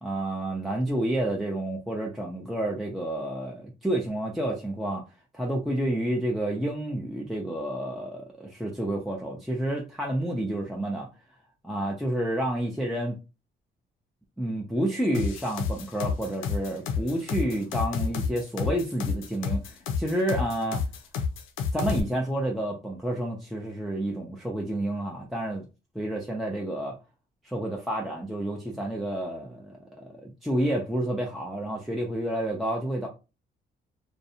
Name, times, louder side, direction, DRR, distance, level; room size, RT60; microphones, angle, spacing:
voice 1, 0.0-5.0 5.3-11.1 11.6-13.2 14.4-20.8 21.7-25.7 25.9-27.0 27.4-33.1, right 1 dB, ahead, 0.5 m, -29 dB
sound 1, 15.1-22.0, left 6 dB, 90° left, 0.5 m, -29 dB
2.5 x 2.1 x 2.7 m
cardioid pair, 90°, 20 cm